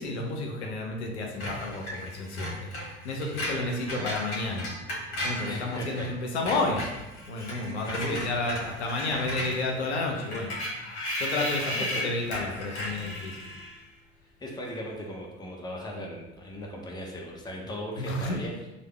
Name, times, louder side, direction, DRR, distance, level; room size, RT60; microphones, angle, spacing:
voice 1, 0.0-4.7 5.2-6.8 7.3-13.5 18.0-18.4, left 2 dB, 75° left, 1 dB, 0.6 m, -31 dB
Screech, 1.4-6.1 6.3-13.8, left 1 dB, 50° left, 1.1 m, -35 dB
voice 2, 5.5-6.1 7.9-8.3 11.7-12.0 14.4-18.5, equal, 10° left, -1 dB, 0.7 m, -37 dB
3.3 x 2.2 x 3.2 m, 0.99 s
figure-of-eight pair, 60°, 34 cm